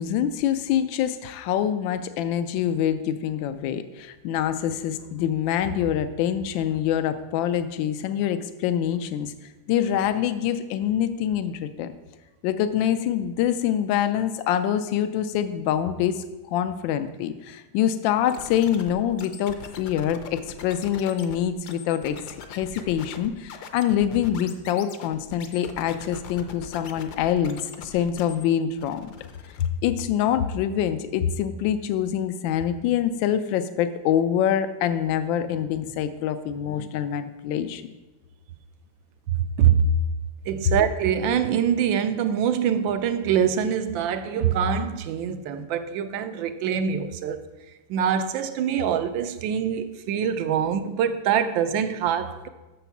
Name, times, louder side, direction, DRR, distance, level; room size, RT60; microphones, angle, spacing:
voice 1, 0.0-9.3 9.7-11.9 12.4-29.1 29.6-37.8, left 10 dB, 85° left, 11 dB, 1.3 m, -25 dB
sound 1, 18.3-28.4 28.8-29.7, left 7 dB, 65° left, 1.2 m, -41 dB
voice 2, 39.4-39.8 40.5-47.4 47.9-52.5, right 8 dB, 85° right, 10 dB, 1.4 m, -24 dB
7.1 x 6.9 x 5.8 m, 1.1 s
omnidirectional pair, 2.1 m